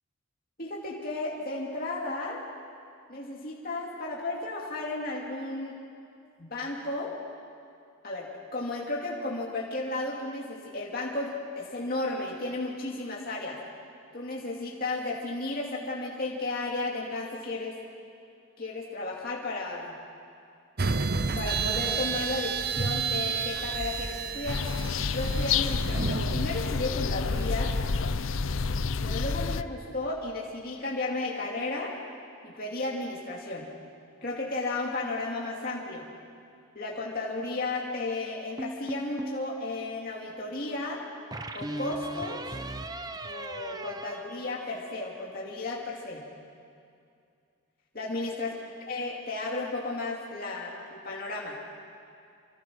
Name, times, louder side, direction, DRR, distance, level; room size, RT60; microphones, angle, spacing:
voice 1, 0.6-2.4 3.1-5.8 6.4-7.1 8.0-13.6 14.1-17.7 18.6-20.0 21.4-24.6 25.1-27.7 29.0-31.9 32.4-33.7 34.2-36.1 36.7-41.0 41.5-42.4 43.2-46.2 47.9-48.6 48.9-51.6, left 2 dB, 45° left, -3 dB, 2.6 m, -34 dB
sound 1, 20.8-26.6, right 5 dB, 45° right, 0.8 m, -31 dB
sound 2, 24.5-29.6, left 4 dB, 75° left, 0.7 m, -29 dB
sound 3, 38.6-39.5 41.3-45.1, right 2 dB, 20° right, 0.8 m, -38 dB
26.5 x 25.5 x 6.3 m, 2.5 s
head